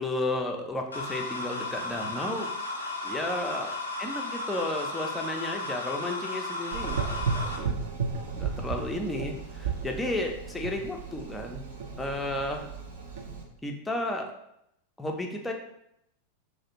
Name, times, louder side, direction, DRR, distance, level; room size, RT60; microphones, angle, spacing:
voice 1, 0.0-2.5 3.0-3.7 4.0-7.7 8.3-11.6 12.0-12.7 13.6-14.3 15.0-15.5, left 1 dB, 10° left, 2 dB, 0.4 m, -33 dB
sound 1, 0.9-7.6, left 2 dB, 80° left, 0.4 m, -34 dB
Gurgling / Engine, 6.7-13.4, right 5 dB, 60° right, 0.4 m, -34 dB
2.3 x 2.0 x 2.9 m, 0.78 s
figure-of-eight pair, 90°, 0 cm